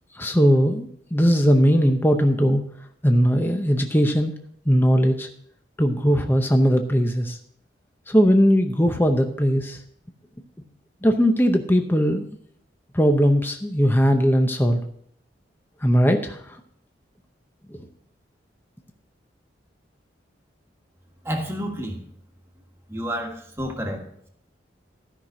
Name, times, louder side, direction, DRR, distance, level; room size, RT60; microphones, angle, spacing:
voice 1, 0.1-2.6 3.0-4.3 4.7-5.3 5.8-7.4 8.1-9.8 11.0-12.3 12.9-14.8 15.8-16.6 17.7-17.9, equal, 10° left, 5 dB, 0.7 m, -19 dB
voice 2, 21.2-22.0 22.9-24.1, equal, 15° right, 2 dB, 1.5 m, -30 dB
13.5 x 5.8 x 6.2 m, 0.66 s
head